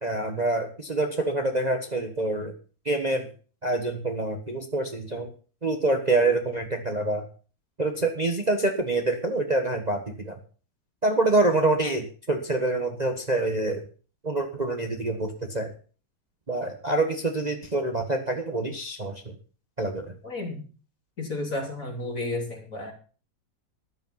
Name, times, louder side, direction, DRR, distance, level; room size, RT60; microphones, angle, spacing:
voice 1, 0.0-2.5 2.8-3.3 3.6-5.3 5.6-7.2 7.8-10.4 11.0-13.8 14.2-15.7 16.5-19.2 19.8-20.1, right 2 dB, 25° right, 4 dB, 1.5 m, -26 dB
voice 2, 20.2-20.6 21.2-22.9, left 2 dB, 45° left, 2 dB, 3.8 m, -32 dB
14.0 x 10.5 x 5.8 m, 0.39 s
omnidirectional pair, 2.1 m